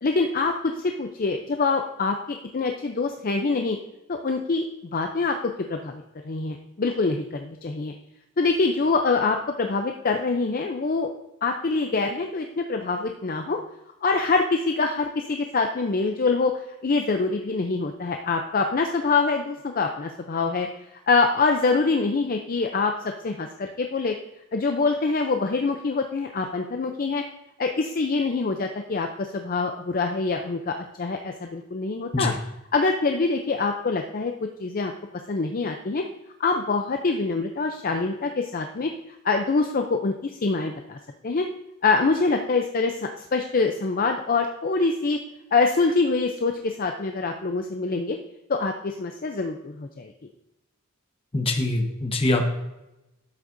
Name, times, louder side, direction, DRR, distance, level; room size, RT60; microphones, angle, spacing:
voice 1, 0.0-3.8 4.1-4.7 4.9-5.4 5.7-7.9 8.4-11.1 11.4-13.6 14.0-20.7 21.1-22.9 23.2-24.1 24.5-27.2 27.6-32.3 32.7-34.3 34.6-34.9 35.3-36.0 36.4-38.9 39.2-41.0 41.2-41.5 41.8-45.2 45.5-48.2 48.5-50.1, left 4 dB, 45° left, 4 dB, 0.5 m, -25 dB
voice 2, 51.3-52.5, left 2 dB, 25° left, 3 dB, 1.1 m, -23 dB
11.5 x 7.6 x 2.6 m, 0.96 s
head